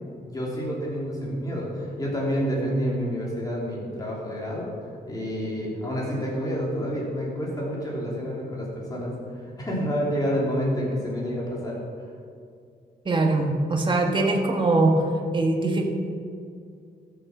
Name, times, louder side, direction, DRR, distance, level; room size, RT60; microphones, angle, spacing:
voice 1, 0.2-4.7 5.1-11.8, equal, 20° left, -4 dB, 3.1 m, -28 dB
voice 2, 13.0-15.0 15.3-15.8, right 2 dB, 30° right, 2 dB, 1.4 m, -22 dB
13.0 x 7.0 x 6.1 m, 2.3 s
wide cardioid pair, 140°, 18 cm